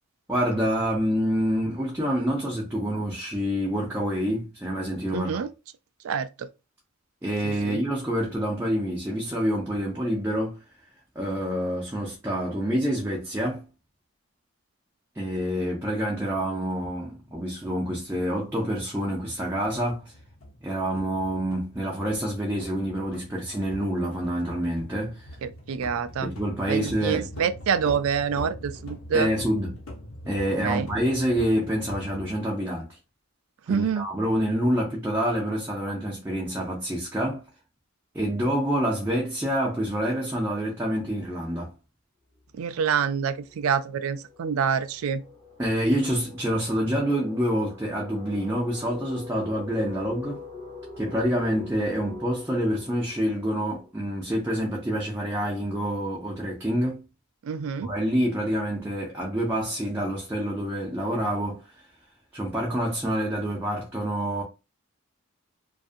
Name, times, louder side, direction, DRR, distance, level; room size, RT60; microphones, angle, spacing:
voice 1, 0.3-5.4 7.2-10.6 11.2-13.7 15.2-20.1 20.6-25.3 26.2-27.3 29.1-29.7 30.3-33.0 33.7-37.4 38.1-41.7 45.6-50.4 51.0-57.0 57.8-61.6 62.3-64.4, equal, 10° right, 0.5 m, -27 dB
voice 2, 5.1-5.5 6.0-6.5 7.4-7.8 25.4-26.3 26.7-29.3 30.6-30.9 33.7-34.1 42.6-45.2 57.4-57.9, right 7 dB, 75° right, 0.3 m, -27 dB
sound 1, 16.2-32.4, left 1 dB, 70° left, 0.8 m, -43 dB
sound 2, 42.4-42.6 42.9-54.5, left 4 dB, 25° left, 0.8 m, -44 dB
2.6 x 2.4 x 2.4 m
head